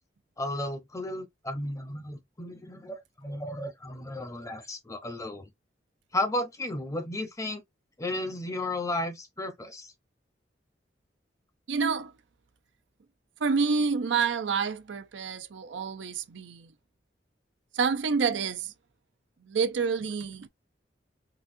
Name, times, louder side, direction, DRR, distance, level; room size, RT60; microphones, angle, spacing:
voice 1, 0.4-5.5 6.1-7.6 8.0-9.9, left 1 dB, 20° left, 0.8 m, -34 dB
voice 2, 11.7-12.1 13.4-16.7 17.7-18.7 19.5-20.5, right 5 dB, 90° right, 0.5 m, -28 dB
4.0 x 2.3 x 2.6 m
head